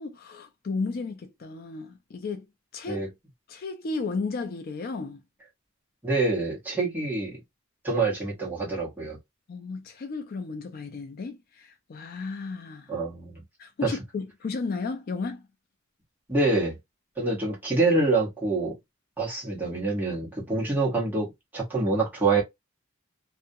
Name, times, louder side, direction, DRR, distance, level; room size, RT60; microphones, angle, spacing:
voice 1, 0.0-2.5 2.7-3.1 3.5-5.2 9.5-13.0 13.6-15.5, left 4 dB, 45° left, 0.4 m, -34 dB
voice 2, 6.0-7.4 7.8-9.2 12.9-13.4 13.8-14.0 16.3-16.8 17.2-18.8 19.2-22.4, right 3 dB, 10° right, 0.9 m, -26 dB
2.4 x 2.1 x 2.5 m
head